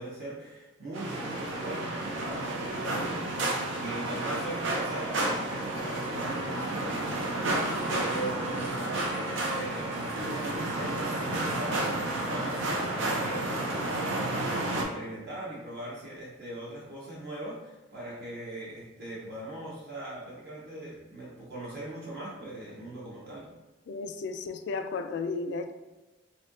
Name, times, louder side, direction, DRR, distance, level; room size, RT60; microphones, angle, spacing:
voice 1, 0.0-23.5, right 1 dB, 55° right, 0.8 m, -40 dB
sound 1, 0.9-14.8, right 2 dB, 85° right, 0.6 m, -31 dB
voice 2, 23.9-25.7, left 4 dB, 65° left, 0.3 m, -34 dB
4.1 x 2.7 x 2.5 m
head